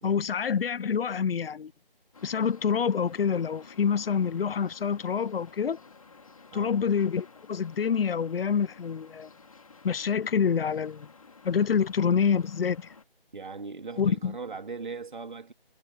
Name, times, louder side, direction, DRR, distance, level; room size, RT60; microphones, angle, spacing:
voice 1, 0.0-1.7 2.2-5.8 6.5-9.3 9.8-11.1 11.4-12.9 14.0-14.3, left 7 dB, 75° left, 0.5 m, -27 dB
sound 1, 2.1-13.0, left 4 dB, 35° left, 2.1 m, -52 dB
voice 2, 13.3-15.5, right 4 dB, 55° right, 2.1 m, -39 dB
figure-of-eight pair, 170°, 29 cm